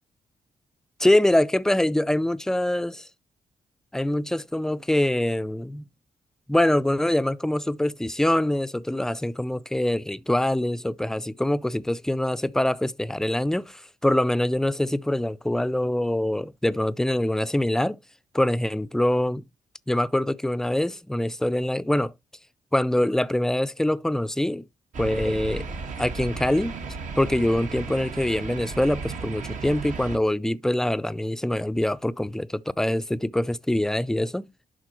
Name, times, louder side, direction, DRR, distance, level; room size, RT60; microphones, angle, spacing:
voice 1, 1.0-3.1 3.9-5.9 6.5-18.0 18.3-19.4 19.9-22.1 22.7-24.6 25.0-25.7 26.0-26.7 27.2-34.5, left 1 dB, 5° left, 0.4 m, -24 dB
sound 1, 24.9-30.2, right 4 dB, 70° right, 1.6 m, -34 dB
11.0 x 4.1 x 3.0 m
cardioid pair, 85°, 13 cm